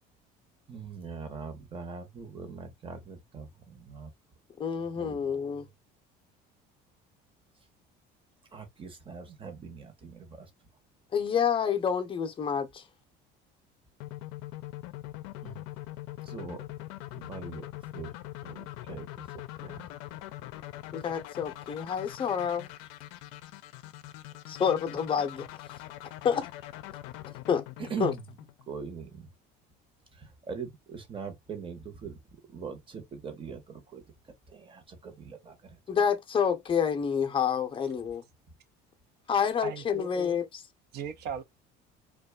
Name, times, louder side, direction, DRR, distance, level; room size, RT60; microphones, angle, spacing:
voice 1, 0.7-4.1 4.8-5.6 8.5-10.5 15.4-15.6 16.2-16.7 17.1-17.7 17.9-18.1 18.4-19.9 27.8-28.2 28.7-29.3 30.1-32.2 32.5-35.8, right 6 dB, 25° right, 0.9 m, -42 dB
voice 2, 4.6-5.7 11.1-12.8 20.9-22.7 24.5-25.5 26.2-26.5 27.5-27.7 28.0-28.1 35.9-38.2 39.3-40.5, left 7 dB, 25° left, 0.6 m, -28 dB
sound 1, 14.0-28.9, left 15 dB, 85° left, 0.4 m, -43 dB
voice 3, 39.3-40.3 40.9-41.4, right 7 dB, 55° right, 0.6 m, -39 dB
2.5 x 2.3 x 2.3 m
cardioid pair, 125°, 20 cm